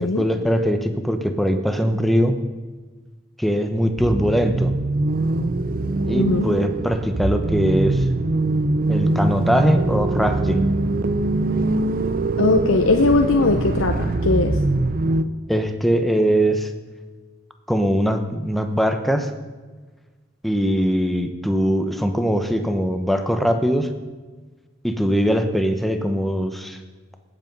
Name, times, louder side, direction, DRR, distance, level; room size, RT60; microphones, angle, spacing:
voice 1, 0.0-2.4 3.4-4.7 6.0-8.0 8.9-10.7 15.5-16.7 17.7-19.3 20.4-23.9 24.8-26.8, equal, ahead, 6 dB, 0.9 m, -21 dB
sound 1, 4.0-15.2, right 2 dB, 45° right, 0.6 m, -22 dB
voice 2, 6.2-6.5 12.4-14.6, left 3 dB, 80° left, 4 dB, 0.8 m, -19 dB
19.0 x 8.2 x 5.4 m, 1.3 s
head